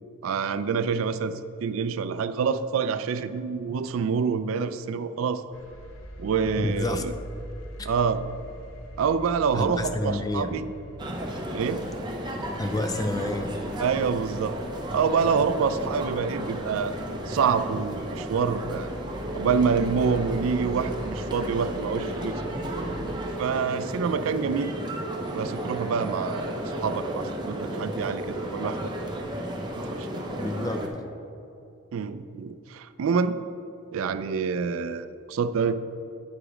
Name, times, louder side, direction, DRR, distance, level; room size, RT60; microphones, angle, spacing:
voice 1, 0.2-5.4 6.2-7.1 7.9-8.2 9.0-10.6 11.5-11.8 13.8-14.6 14.9-17.0 17.3-18.9 19.4-22.4 23.4-24.7 25.3-26.5 26.8-28.9 30.0-30.2 31.9-33.4 33.9-35.8, right 6 dB, 80° right, 12 dB, 0.3 m, -26 dB
sound 1, 5.5-23.1, right 1 dB, 90° left, 1.0 m, -43 dB
voice 2, 6.6-7.0 7.8-7.9 9.5-10.5 12.6-13.5 30.4-30.8, left 2 dB, 20° left, 7 dB, 0.4 m, -29 dB
sound 2, 11.0-30.9, equal, 20° right, 0.7 m, -34 dB
sound 3, 19.2-29.2, right 4 dB, 40° right, 1.2 m, -40 dB
8.4 x 4.9 x 4.9 m, 2.7 s
head